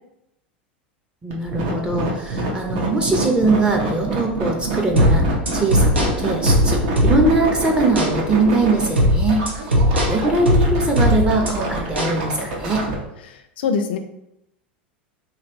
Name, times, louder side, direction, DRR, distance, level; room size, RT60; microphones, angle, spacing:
voice 1, 1.2-5.3 5.5-9.4 9.9-12.8, right 2 dB, 15° right, 1 dB, 0.6 m, -21 dB
sound 1, 1.3-12.9, right 3 dB, 55° right, 0.9 m, -27 dB
sound 2, 5.0-7.5 8.0-8.1 9.0-11.5 12.0-12.2, equal, 85° right, 0.7 m, -18 dB
voice 2, 13.3-14.0, left 5 dB, 65° left, 8 dB, 0.4 m, -24 dB
2.9 x 2.9 x 2.9 m, 0.83 s
figure-of-eight pair, 85°, 6 cm